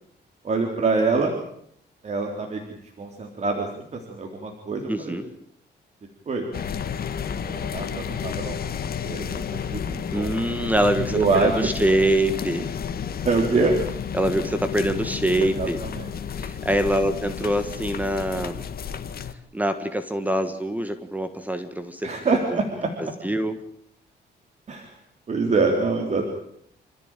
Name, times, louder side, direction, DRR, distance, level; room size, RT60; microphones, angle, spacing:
voice 1, 0.4-1.3 2.0-5.2 6.3-6.5 7.4-8.6 9.0-10.3 11.1-11.7 13.2-13.8 15.4-16.1 22.0-22.9 24.7-24.9 25.3-26.3, right 3 dB, 40° right, 2 dB, 3.6 m, -25 dB
voice 2, 4.9-5.2 10.1-12.7 14.1-15.8 16.3-18.6 19.5-22.1 23.0-23.5, right 1 dB, 10° right, 9 dB, 1.6 m, -24 dB
sound 1, 6.5-19.3, left 7 dB, 55° left, 1.8 m, -31 dB
28.0 x 14.5 x 9.1 m, 0.70 s
cardioid pair, 135°, 18 cm